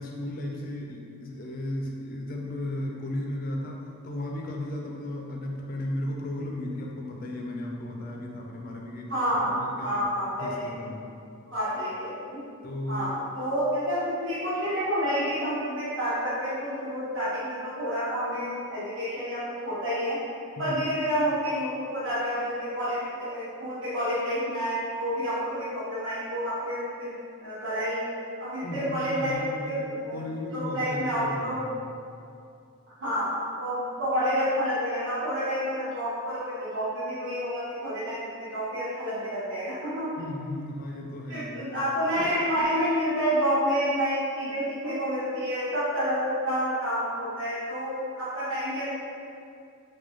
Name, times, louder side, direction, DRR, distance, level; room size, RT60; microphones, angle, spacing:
voice 1, 0.0-9.1 9.4-10.1 10.4-11.1 12.6-13.2 20.6-20.8 28.6-29.8 30.1-31.9 40.2-41.5, left 1 dB, 40° left, 0 dB, 0.3 m, -35 dB
voice 2, 9.1-10.7 11.5-12.4 12.9-20.2 20.6-28.0 28.4-29.3 29.6-30.2 30.5-31.6 33.0-40.1 41.3-48.9, equal, 55° right, -12 dB, 1.2 m, -29 dB
4.1 x 2.2 x 2.9 m, 2.4 s
head